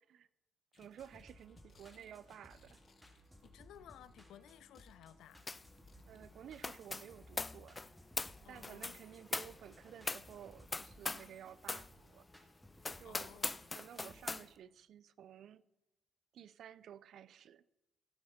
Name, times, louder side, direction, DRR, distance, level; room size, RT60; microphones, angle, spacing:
sound 1, 0.7-4.3 4.6-6.5 7.0-7.3 7.8-7.9 8.1-8.2, left 5 dB, 50° left, 1.3 m, -69 dB
voice 1, 0.7-2.8 6.1-7.8 8.5-12.3 13.0-13.4 13.7-15.6 16.3-17.6, right 9 dB, 70° right, 0.4 m, -54 dB
sound 2, 0.8-14.5, equal, ahead, 2.1 m, -62 dB
voice 2, 3.4-5.4 8.4-9.0 13.0-13.6, left 11 dB, 80° left, 0.5 m, -57 dB
sound 3, 5.5-5.7 6.0-11.3 11.6-11.9 12.3-12.4 12.8-14.4, left 3 dB, 20° left, 0.3 m, -41 dB
15.0 x 6.3 x 5.8 m
cardioid pair, 90°, 0 cm